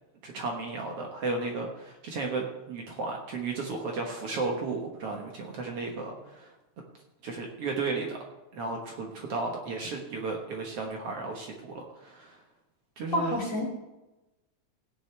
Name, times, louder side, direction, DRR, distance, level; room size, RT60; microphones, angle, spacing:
voice 1, 0.2-6.5 7.2-8.2 8.5-12.4 13.0-13.4, right 3 dB, 60° right, 1 dB, 2.2 m, -34 dB
voice 2, 13.1-13.6, left 1 dB, 30° left, -2 dB, 2.6 m, -28 dB
16.0 x 10.0 x 3.3 m, 1.0 s
omnidirectional pair, 3.4 m